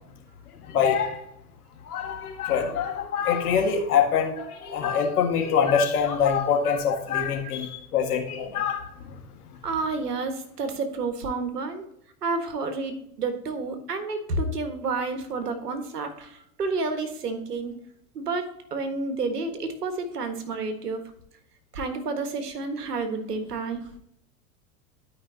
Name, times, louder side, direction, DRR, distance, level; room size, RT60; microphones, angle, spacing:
voice 1, 0.6-1.2 1.8-9.2, left 7 dB, 70° left, 3 dB, 1.8 m, -24 dB
voice 2, 9.6-11.8 12.2-17.7 18.1-21.0 21.7-23.9, right 3 dB, 80° right, 7 dB, 1.5 m, -30 dB
12.0 x 5.2 x 2.8 m, 0.76 s
hypercardioid pair, 90°, 46 cm